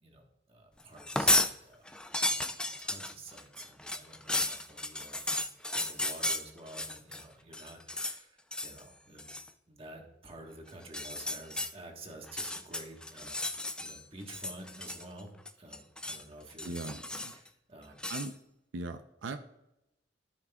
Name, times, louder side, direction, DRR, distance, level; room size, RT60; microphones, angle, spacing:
voice 1, 0.0-1.9 2.2-9.3 9.7-13.5 13.8-15.3 15.6-16.7 17.2-18.1, right 2 dB, 30° right, 2 dB, 1.3 m, -50 dB
sound 1, 1.0-1.5 1.9-7.2 7.5-8.2 8.5-8.8 9.2-9.5 10.8-11.7 12.2-14.0 14.3-15.2 15.5-16.2 16.6-17.5 18.0-18.3, left 1 dB, 5° left, 0.3 m, -33 dB
voice 2, 16.6-17.3 18.1-18.4 18.7-19.4, right 3 dB, 90° right, 8 dB, 0.5 m, -39 dB
14.0 x 5.9 x 2.3 m, 0.87 s
head